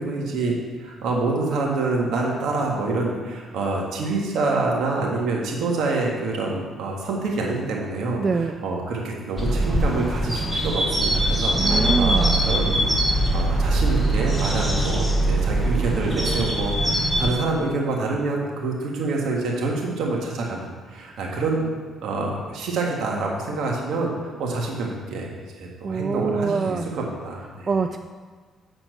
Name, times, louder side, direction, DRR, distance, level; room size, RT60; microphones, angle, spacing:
voice 1, 0.0-21.7 22.0-25.3 25.6-27.7, right 3 dB, 80° right, -1 dB, 1.7 m, -27 dB
voice 2, 8.2-8.5 11.5-12.4 25.8-26.9 27.7-28.0, right 5 dB, 40° right, 7 dB, 0.3 m, -24 dB
sound 1, 9.4-17.3, right 1 dB, 10° right, 2.4 m, -22 dB
7.8 x 4.4 x 6.8 m, 1.5 s
cardioid pair, 90°, 0 cm